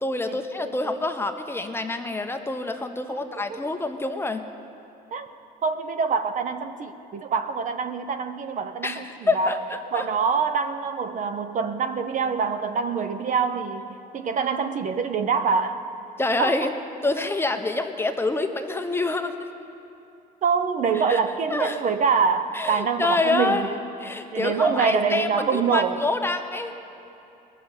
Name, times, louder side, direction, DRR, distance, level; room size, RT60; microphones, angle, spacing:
voice 1, 0.0-4.4 8.8-9.6 9.9-10.0 16.2-16.7 17.0-19.5 20.9-21.2 21.5-21.8 22.5-26.7, left 2 dB, 15° left, 6 dB, 0.8 m, -27 dB
voice 2, 3.1-3.6 5.1-5.3 5.6-9.0 9.3-9.5 9.9-13.9 14.1-15.8 16.4-16.5 20.4-23.7 24.3-26.0, right 5 dB, 50° right, 9 dB, 0.8 m, -25 dB
20.0 x 6.8 x 8.0 m, 2.7 s
cardioid pair, 110°, 17 cm